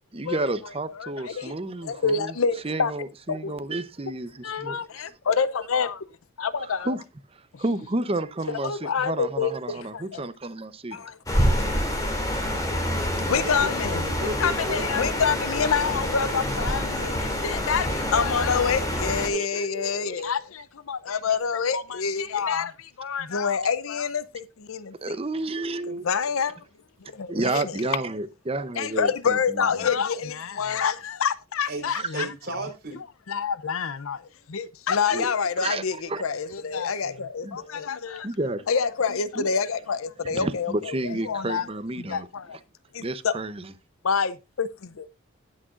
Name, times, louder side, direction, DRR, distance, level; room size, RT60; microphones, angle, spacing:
voice 1, 0.1-2.3 2.6-5.2 6.6-7.0 7.3-11.1 16.5-16.7 19.3-20.2 25.0-26.1 27.3-29.9 31.9-32.1 35.1-36.2 37.4-37.6 38.2-38.6 39.3-39.5 40.2-42.3 43.0-43.7, right 2 dB, 25° right, 0.7 m, -31 dB
voice 2, 1.0-1.5 1.8-2.9 3.3-3.5 4.4-6.0 6.4-6.9 8.6-10.2 10.9-11.1 11.6-11.8 13.3-14.1 14.4-24.9 25.9-26.6 27.1-27.7 28.8-32.3 33.3-34.2 34.5-38.3 38.7-41.7 42.0-42.6 42.9-43.3 44.0-45.1, left 6 dB, 80° left, 0.6 m, -27 dB
sound 1, 11.3-19.3, equal, 15° left, 2.7 m, -27 dB
voice 3, 13.4-14.9 17.5-18.2 31.7-31.9 32.1-33.0, right 1 dB, 50° right, 4.1 m, -34 dB
18.5 x 6.3 x 2.5 m
head